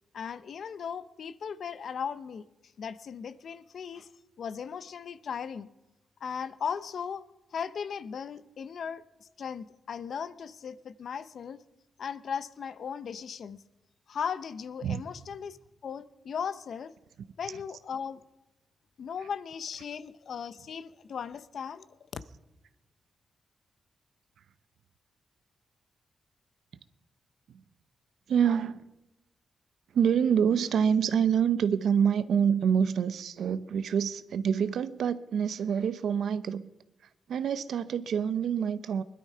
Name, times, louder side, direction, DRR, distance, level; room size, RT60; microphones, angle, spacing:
voice 1, 0.1-2.4 2.8-4.1 4.4-5.7 6.2-7.2 7.5-11.6 12.0-13.6 14.1-15.6 15.8-16.9 17.4-18.2 19.0-21.9, left 7 dB, 70° left, 0.7 m, -37 dB
voice 2, 28.3-28.8 29.9-36.7 37.3-39.0, right 7 dB, 80° right, 0.7 m, -26 dB
20.5 x 12.0 x 5.7 m
cardioid pair, 95°, 0 cm